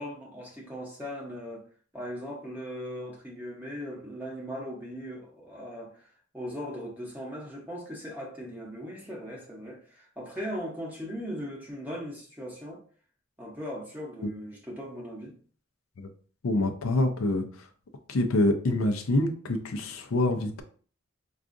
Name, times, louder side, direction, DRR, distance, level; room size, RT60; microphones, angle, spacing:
voice 1, 0.0-1.6 1.9-6.1 6.3-12.8 13.4-15.4, equal, 10° right, 0.7 m, -38 dB
voice 2, 16.4-17.4 18.1-20.6, left 2 dB, 90° left, 0.5 m, -26 dB
4.6 x 2.4 x 2.5 m
head